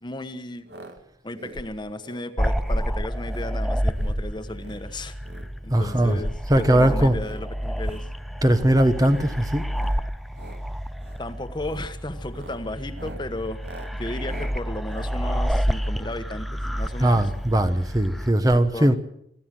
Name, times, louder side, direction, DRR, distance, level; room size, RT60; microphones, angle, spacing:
voice 1, 0.0-0.7 1.2-5.2 5.6-8.1 11.2-13.6 14.0-17.2 18.7-19.0, left 1 dB, 25° left, 1.3 m, -34 dB
sound 1, 0.7-1.0 1.2-1.6 2.0-2.3 2.6-2.9 3.3-3.5 3.9-4.2 4.5-4.8 5.2-6.1 6.5-6.8 7.1-7.4 7.8-8.1 8.5-8.8 9.1-9.4 9.7-10.0 10.3-10.6 11.0-11.2 11.6-11.9 12.3-15.9 16.7-17.0 17.3-17.4 17.5-17.6, right 1 dB, 75° right, 2.4 m, -45 dB
sound 2, 2.4-18.3, equal, ahead, 0.7 m, -30 dB
voice 2, 5.7-6.2 6.5-7.1 8.4-9.6 17.0-19.0, right 1 dB, 20° right, 1.1 m, -19 dB
25.5 x 14.0 x 7.8 m
head